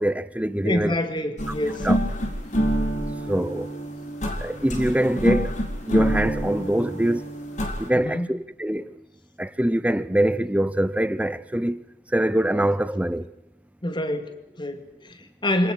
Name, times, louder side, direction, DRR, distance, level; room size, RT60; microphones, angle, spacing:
voice 1, 0.0-1.0 1.8-2.0 3.3-3.7 4.4-5.5 5.9-7.2 7.8-9.0 9.4-11.8 12.1-13.3, right 1 dB, 10° right, 0.7 m, -24 dB
voice 2, 0.6-1.9 7.9-8.3 13.8-15.7, left 1 dB, 25° left, 2.3 m, -27 dB
sound 1, 1.4-7.9, equal, 45° left, 3.8 m, -26 dB
26.0 x 19.0 x 6.5 m
head